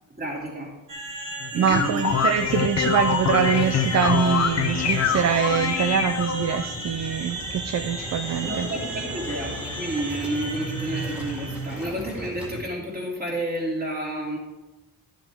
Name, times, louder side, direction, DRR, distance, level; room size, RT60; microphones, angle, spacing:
voice 1, 0.2-0.7 1.5-2.1 8.4-14.4, right 1 dB, 30° right, -3 dB, 2.9 m, -30 dB
sound 1, 0.9-11.9, right 2 dB, 75° right, 2.4 m, -35 dB
sound 2, 1.4-6.7, left 7 dB, 50° left, 0.7 m, -25 dB
voice 2, 1.5-8.7, right 8 dB, 55° right, 8 dB, 0.6 m, -24 dB
Waves surf, 2.3-12.6, right 1 dB, 5° right, 2.3 m, -39 dB
12.0 x 7.5 x 3.6 m, 1.0 s
wide cardioid pair, 120°, 33 cm